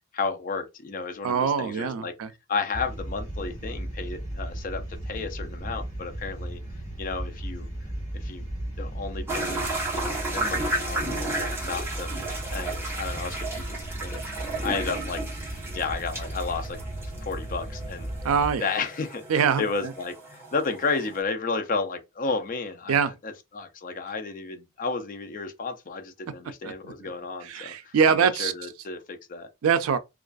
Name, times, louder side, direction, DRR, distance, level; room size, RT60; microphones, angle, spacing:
voice 1, 0.1-2.1 2.5-6.6 7.0-7.7 8.1-8.5 8.8-12.1 12.5-14.2 14.6-16.8 17.2-18.1 18.6-29.5, left 4 dB, 40° left, 0.5 m, -32 dB
voice 2, 1.2-2.3 14.2-14.3 18.2-18.7 19.3-19.6 22.9-23.1 26.6-26.9 27.4-28.5 29.6-30.0, right 6 dB, 80° right, 0.4 m, -23 dB
sound 1, 2.7-18.6, right 1 dB, 20° left, 1.5 m, -35 dB
sound 2, 9.3-21.2, right 2 dB, 10° right, 0.9 m, -34 dB
2.4 x 2.3 x 2.3 m
head